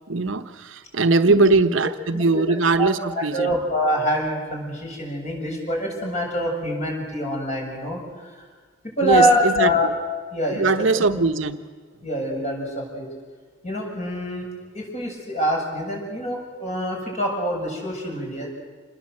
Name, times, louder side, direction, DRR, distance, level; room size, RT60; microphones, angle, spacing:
voice 1, 0.1-3.6 9.0-9.9 10.5-11.6, right 3 dB, 85° right, 7 dB, 1.1 m, -21 dB
voice 2, 2.1-2.9 3.1-8.4 8.8-9.9 10.3-10.9 12.0-13.1 13.6-14.5 14.7-18.5, equal, 40° left, -1 dB, 7.4 m, -25 dB
27.5 x 20.5 x 7.9 m, 1.5 s
head